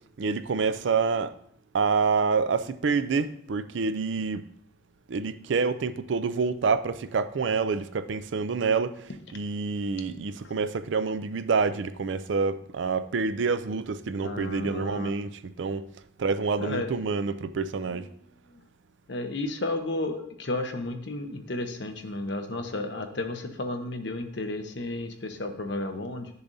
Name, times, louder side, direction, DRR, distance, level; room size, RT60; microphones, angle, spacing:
voice 1, 0.2-1.3 1.7-4.5 5.1-15.9 16.2-18.1, right 5 dB, 75° right, 0.4 m, -27 dB
voice 2, 14.2-15.1 16.6-16.9 19.1-26.3, left 2 dB, 65° left, 0.9 m, -32 dB
10.0 x 6.8 x 2.7 m
head